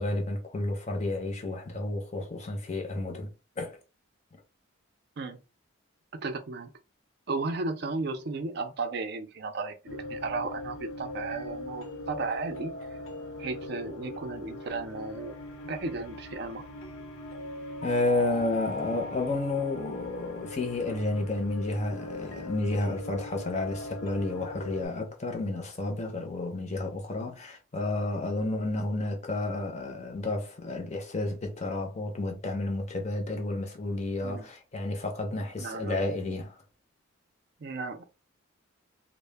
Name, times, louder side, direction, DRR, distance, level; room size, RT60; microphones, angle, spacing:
voice 1, 0.0-3.8 17.8-36.6, left 2 dB, 30° left, 0.5 m, -31 dB
voice 2, 6.1-6.7 7.3-12.7 13.4-15.3 15.6-16.6 34.2-34.4 35.6-36.1 37.6-38.0, right 3 dB, 50° right, 0.4 m, -34 dB
sound 1, 9.9-24.9, left 1 dB, 80° left, 0.7 m, -40 dB
2.1 x 2.0 x 3.2 m
head